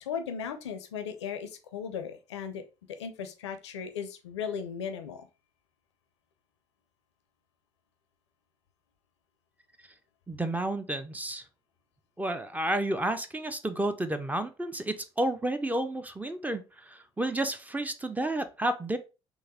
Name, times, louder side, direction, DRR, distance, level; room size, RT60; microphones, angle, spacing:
voice 1, 0.0-2.6 3.0-5.3, left 7 dB, 80° left, 8 dB, 0.4 m, -36 dB
voice 2, 10.3-11.4 12.2-19.0, right 1 dB, 10° right, 10 dB, 0.5 m, -31 dB
3.8 x 2.6 x 2.8 m, 0.30 s
figure-of-eight pair, 55°, 15 cm